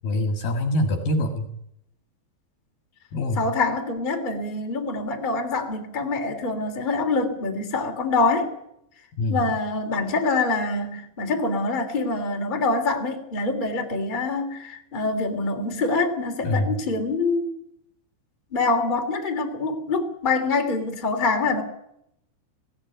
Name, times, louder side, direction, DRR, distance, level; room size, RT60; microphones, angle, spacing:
voice 1, 0.0-1.5 3.1-3.4 9.2-9.5 16.4-16.8, left 1 dB, 55° left, 4 dB, 3.0 m, -24 dB
voice 2, 3.4-8.5 9.3-17.5 18.5-21.6, left 3 dB, 15° left, 3 dB, 1.9 m, -25 dB
19.5 x 17.0 x 9.2 m, 0.80 s
omnidirectional pair, 5.5 m